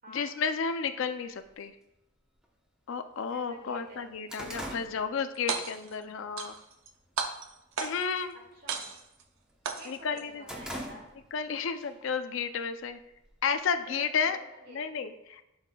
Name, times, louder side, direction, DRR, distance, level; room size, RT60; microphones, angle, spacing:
voice 1, 0.1-1.8 2.9-6.6 7.8-8.3 9.8-10.4 11.3-13.0 13.4-14.4 14.7-15.4, left 6 dB, 60° left, 9 dB, 0.4 m, -32 dB
sound 1, 1.4-1.5 2.4-2.5 3.0-3.1 3.4-5.8 6.2-6.5 7.0-7.5 7.7-8.1 8.4-9.6 10.0-11.5 11.8-11.9 12.8-13.7, equal, 5° right, 0.8 m, -43 dB
voice 2, 3.3-4.1 8.3-8.9 9.7-11.1 13.9-14.8, equal, 40° right, -2 dB, 2.0 m, -49 dB
sound 2, 5.3-6.0 6.4-6.9 7.2-8.2 8.7-9.2 9.7-10.2, right 5 dB, 65° right, 0.6 m, -34 dB
11.5 x 5.7 x 2.3 m, 0.90 s
head